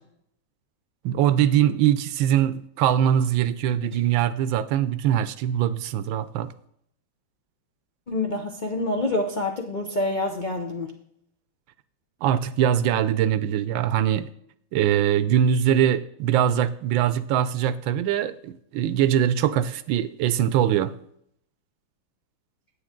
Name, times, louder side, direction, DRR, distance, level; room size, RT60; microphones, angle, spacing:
voice 1, 1.0-6.5 12.2-14.3 14.7-20.9, right 10 dB, 75° right, 14 dB, 1.3 m, -22 dB
voice 2, 8.1-10.9, left 2 dB, 70° left, 2 dB, 0.4 m, -27 dB
9.9 x 8.5 x 3.7 m, 0.70 s
omnidirectional pair, 2.3 m